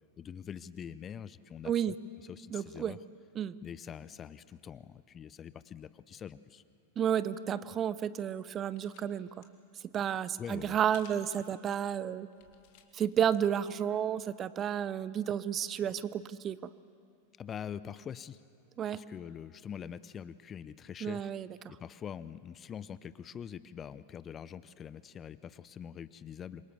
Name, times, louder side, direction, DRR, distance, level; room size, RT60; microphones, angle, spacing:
voice 1, 0.2-1.9 2.2-3.0 3.6-6.6 10.4-10.8 17.4-18.4 18.9-21.3 21.7-26.7, left 8 dB, 25° left, 17 dB, 0.6 m, -44 dB
voice 2, 1.6-2.0 2.5-3.0 3.4-3.5 7.0-9.3 9.9-12.3 12.9-16.7 18.8-19.0 21.0-21.5, right 9 dB, 25° right, 17 dB, 0.6 m, -31 dB
sound 1, 8.3-9.1 9.3-9.5 10.9-11.3 11.8-11.9 12.3-13.4 13.7-13.8, left 9 dB, 50° left, 2.4 m, -58 dB
27.0 x 23.5 x 7.1 m, 2.4 s
figure-of-eight pair, 90°, 0 cm